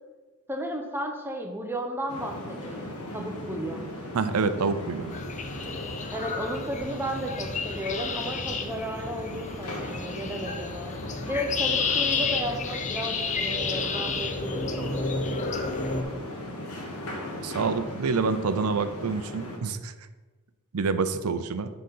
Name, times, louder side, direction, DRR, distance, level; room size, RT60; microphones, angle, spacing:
voice 1, 0.5-3.9 6.1-10.9 11.3-15.2, equal, 10° right, 3 dB, 0.8 m, -34 dB
sound 1, 2.1-19.6, left 1 dB, 85° left, 1.5 m, -39 dB
voice 2, 4.1-5.1 17.4-19.9 20.7-21.7, right 4 dB, 85° right, 11 dB, 0.5 m, -27 dB
sound 2, 5.1-16.0, left 4 dB, 35° left, 0.6 m, -31 dB
7.7 x 3.9 x 5.5 m, 1.3 s
head